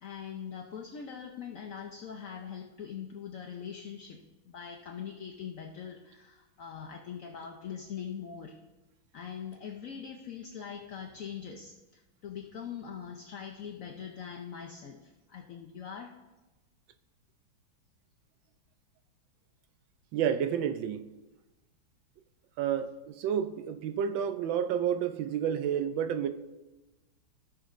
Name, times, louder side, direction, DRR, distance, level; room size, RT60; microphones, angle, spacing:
voice 1, 0.0-8.6 9.1-16.1 20.2-20.3, left 7 dB, 75° left, 0.7 m, -42 dB
voice 2, 20.1-21.1 22.6-26.3, right 8 dB, 75° right, 1.3 m, -30 dB
16.5 x 6.5 x 2.5 m
omnidirectional pair, 2.2 m